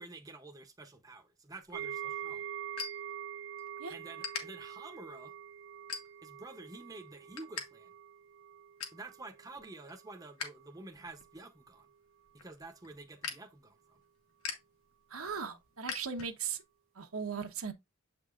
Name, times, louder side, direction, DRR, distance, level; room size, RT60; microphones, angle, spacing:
voice 1, 0.0-2.5 3.9-5.3 6.2-7.9 8.9-11.9 12.3-14.0, right 2 dB, 15° right, 0.7 m, -49 dB
sound 1, 1.6-3.7 4.0-4.4 5.0-5.2 5.8-6.5 6.8-7.7 7.9-8.0 8.4-9.1 9.5-10.5 10.9-16.6, left 6 dB, 80° left, 1.7 m, -43 dB
sound 2, 1.7-10.8 11.1-11.4 11.8-11.9, right 9 dB, 60° right, 0.6 m, -45 dB
voice 2, 15.1-16.6 17.0-17.7, right 6 dB, 85° right, 1.1 m, -38 dB
7.8 x 4.9 x 2.5 m
head